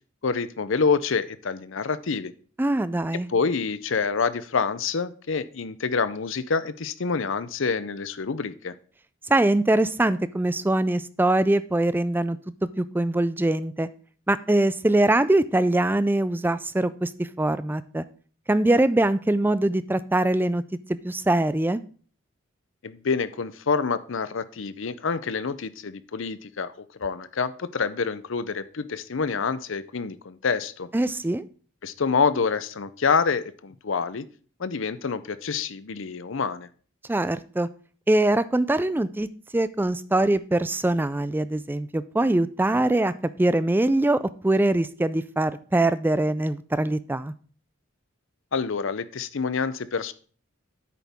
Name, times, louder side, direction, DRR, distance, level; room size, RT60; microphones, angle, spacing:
voice 1, 0.2-2.3 3.1-8.8 22.8-26.7 27.0-30.9 31.8-34.2 34.6-36.7 48.5-50.1, left 5 dB, 65° left, 14 dB, 0.6 m, -27 dB
voice 2, 2.6-3.3 9.3-12.4 12.8-13.9 14.3-18.0 18.5-20.6 21.0-21.8 30.9-31.4 37.1-37.7 38.1-39.3 39.5-43.1 43.4-47.3, right 1 dB, 10° right, 15 dB, 0.3 m, -23 dB
9.8 x 8.3 x 3.6 m, 0.43 s
head